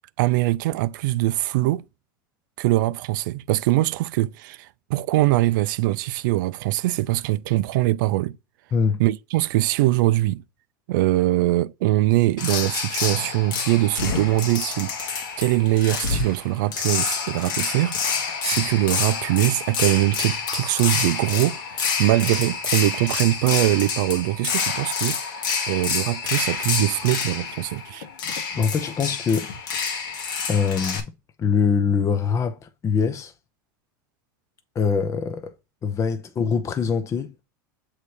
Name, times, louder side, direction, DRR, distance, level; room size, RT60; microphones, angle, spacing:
voice 1, 0.2-1.8 2.6-8.4 9.0-10.4 10.9-25.2 25.7-28.1, right 17 dB, 65° right, 0.4 m, -22 dB
sound 1, 12.4-31.0, left 6 dB, 70° left, 1.4 m, -28 dB
voice 2, 28.6-29.5 30.5-31.0 31.4-33.3 34.7-35.5 35.8-37.3, left 6 dB, 30° left, 0.7 m, -23 dB
6.7 x 3.2 x 4.8 m
hypercardioid pair, 95°, 11 cm